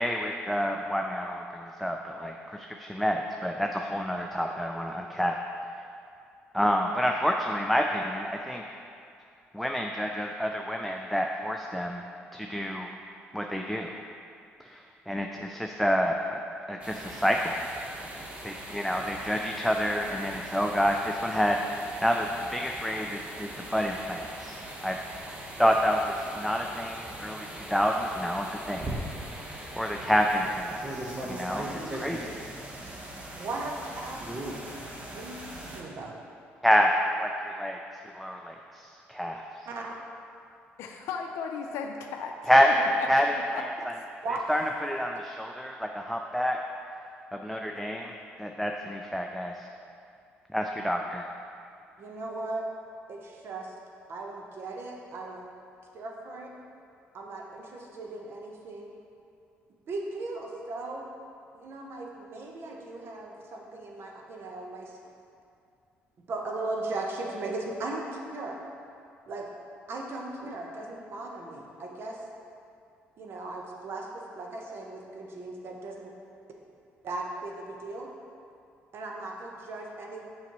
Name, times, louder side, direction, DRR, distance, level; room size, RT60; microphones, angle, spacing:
voice 1, 0.0-5.3 6.5-8.6 9.5-12.0 12.3-12.9 13.3-13.9 14.6-16.4 16.7-17.7 18.4-25.0 25.6-28.9 29.8-32.4 36.6-36.9 37.2-37.8 38.1-39.4 42.5-42.7 43.1-43.7 44.5-46.6 47.3-48.1 48.4-49.7 50.5-51.3, equal, ahead, 1 dB, 0.4 m, -28 dB
sound 1, 16.8-35.8, right 1 dB, 25° right, 1.0 m, -40 dB
voice 2, 33.4-36.2 39.7-40.0 44.2-44.4 52.0-52.7 53.1-53.7 54.1-55.5 55.9-56.5 57.1-58.9 59.9-61.1 61.5-65.0 66.3-68.6 69.3-69.5 69.9-72.2 73.2-76.1 77.0-78.1 78.9-80.3, right 2 dB, 60° right, 0 dB, 0.9 m, -37 dB
voice 3, 40.8-43.7 43.9-44.0, left 5 dB, 85° left, 3 dB, 0.5 m, -37 dB
7.0 x 5.2 x 3.0 m, 2.5 s
cardioid pair, 80°, 5 cm